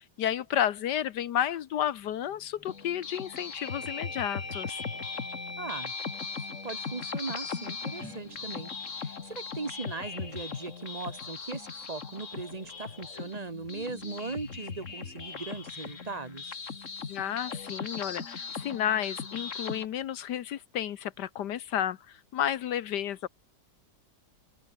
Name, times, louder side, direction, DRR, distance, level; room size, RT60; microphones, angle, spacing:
voice 1, 0.2-4.8 17.1-23.3, left 10 dB, 75° left, 1.5 m, -31 dB
sound 1, 2.3-2.7 3.2-9.4, left 2 dB, 15° left, 0.6 m, -43 dB
sound 2, 2.7-19.9, left 5 dB, 45° left, 2.1 m, -39 dB
voice 2, 5.6-5.9 6.3-16.6, right 3 dB, 25° right, 1.3 m, -39 dB
open air
omnidirectional pair, 1.8 m